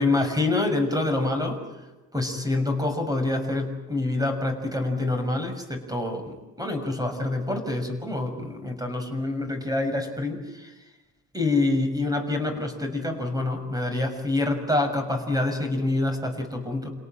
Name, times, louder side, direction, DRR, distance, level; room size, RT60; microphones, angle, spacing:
voice 1, 0.0-1.6 2.1-10.7 11.3-16.9, left 2 dB, 10° right, 6 dB, 6.3 m, -26 dB
28.5 x 18.0 x 8.9 m, 1.1 s
cardioid pair, 90°, 30 cm